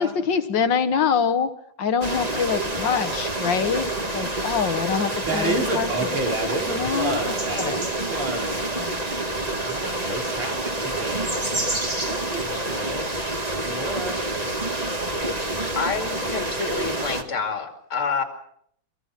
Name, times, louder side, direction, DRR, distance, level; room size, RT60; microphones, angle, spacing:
voice 1, 0.0-3.9 4.1-5.9 6.7-7.2 7.6-7.8 8.8-8.9, left 6 dB, 65° left, 11 dB, 1.9 m, -25 dB
sound 1, 2.0-17.2, right 1 dB, 20° right, 2.0 m, -27 dB
voice 2, 5.0-8.6 9.4-13.1 13.6-14.2, right 2 dB, 75° right, 0 dB, 6.0 m, -31 dB
voice 3, 15.6-18.2, left 5 dB, 85° left, 5 dB, 3.6 m, -28 dB
26.0 x 22.5 x 5.9 m, 0.66 s
omnidirectional pair, 2.3 m